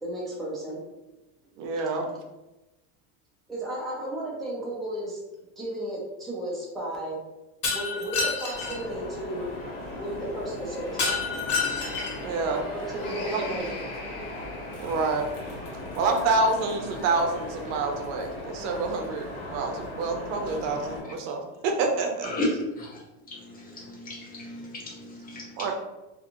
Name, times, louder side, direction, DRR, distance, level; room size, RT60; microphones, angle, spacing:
voice 1, 0.0-0.8 3.5-5.2 5.6-7.2 7.7-9.4 10.0-11.1 12.7-13.8, right 1 dB, ahead, -6 dB, 0.3 m, -33 dB
voice 2, 1.6-2.1 9.4-9.5 12.2-12.6 13.2-13.6 14.8-15.2 16.0-22.3 25.6-25.7, right 3 dB, 60° right, 3 dB, 0.6 m, -27 dB
Shatter, 7.6-8.8 11.0-12.3, left 5 dB, 90° left, 1.3 m, -28 dB
sound 1, 8.5-21.0, left 2 dB, 70° left, 1.2 m, -37 dB
voice 3, 23.3-25.7, left 2 dB, 20° left, -3 dB, 0.7 m, -34 dB
2.5 x 2.3 x 2.8 m, 1.0 s
supercardioid pair, 135°, 42 cm